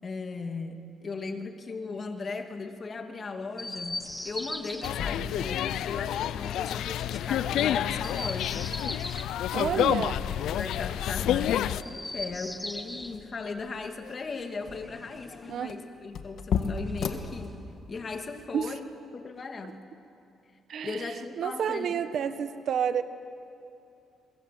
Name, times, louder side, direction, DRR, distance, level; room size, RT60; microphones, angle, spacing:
voice 1, 0.0-8.7 9.5-9.9 10.2-17.6 17.9-18.8 19.1-19.8 20.8-22.0, left 4 dB, 40° left, 5 dB, 2.3 m, -37 dB
Chirp tweet, 3.5-4.9 7.9-9.3 11.7-13.2 14.6-15.7 16.7-17.7, left 1 dB, 10° left, 1.6 m, -39 dB
sound 1, 3.8-18.0, left 6 dB, 65° left, 1.7 m, -39 dB
sound 2, 4.8-11.8, left 11 dB, 80° left, 0.5 m, -29 dB
voice 2, 9.5-10.1 15.5-15.8 18.5-18.7 20.7-23.0, right 8 dB, 65° right, 11 dB, 1.2 m, -30 dB
23.5 x 23.0 x 7.7 m, 2.6 s
cardioid pair, 90°, 0 cm